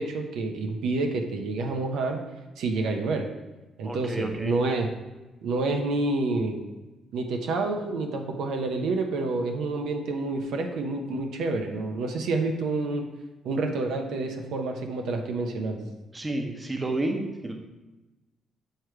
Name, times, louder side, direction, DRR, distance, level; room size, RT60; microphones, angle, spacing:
voice 1, 0.0-2.2 2.6-3.3 3.8-4.9 5.4-6.6 7.1-13.1 13.4-15.9, right 3 dB, 80° right, 3 dB, 0.6 m, -28 dB
voice 2, 3.8-4.6 16.1-17.5, right 2 dB, 20° right, 3 dB, 0.9 m, -30 dB
6.6 x 3.2 x 4.6 m, 1.1 s
cardioid pair, 95°, 0 cm